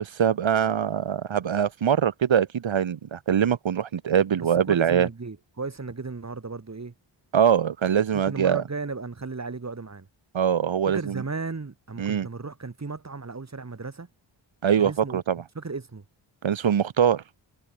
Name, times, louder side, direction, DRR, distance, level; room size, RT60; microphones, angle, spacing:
voice 1, 0.0-5.1 7.3-8.6 10.3-11.2 12.0-12.3 14.6-15.4 16.4-17.2, right 8 dB, 75° right, 2.3 m, -23 dB
voice 2, 4.4-6.9 8.1-10.1 10.9-14.1 14.8-15.2 15.5-16.0, right 4 dB, 35° right, 6.4 m, -35 dB
wide cardioid pair, 125°, 46 cm